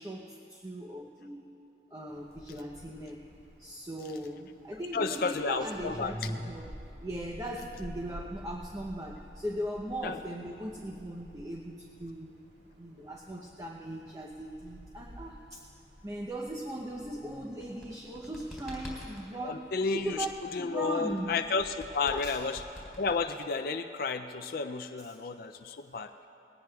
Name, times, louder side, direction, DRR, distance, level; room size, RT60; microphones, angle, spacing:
voice 1, 0.0-1.5 1.9-3.3 3.6-12.3 12.8-15.7 16.0-20.3 20.5-21.3 22.0-22.4 25.0-25.2, right 1 dB, 20° right, -1 dB, 0.7 m, -38 dB
Wind, 2.1-20.7, equal, 80° right, 1.8 m, -52 dB
voice 2, 4.9-6.1 10.0-10.1 19.4-20.2 20.5-22.5 23.0-26.1, left 4 dB, 50° left, 7 dB, 0.4 m, -32 dB
sound 1, 17.5-19.3 21.1-23.7, equal, ahead, 3.3 m, -46 dB
20.5 x 18.0 x 2.3 m, 2.8 s
head